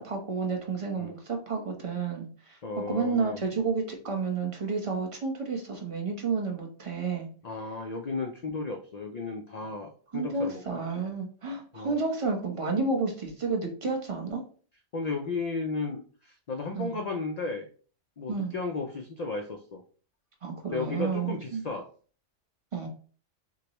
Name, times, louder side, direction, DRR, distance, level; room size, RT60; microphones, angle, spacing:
voice 1, 0.0-2.6 2.9-7.3 10.1-14.4 16.7-17.0 18.3-18.5 20.4-21.6 22.7-22.9, right 4 dB, 30° right, 2 dB, 0.9 m, -31 dB
voice 2, 2.6-3.4 7.4-10.6 11.7-12.0 14.9-17.7 18.2-19.8 20.7-21.9, left 3 dB, 60° left, 4 dB, 0.4 m, -34 dB
6.4 x 2.3 x 3.0 m, 0.41 s
omnidirectional pair, 1.3 m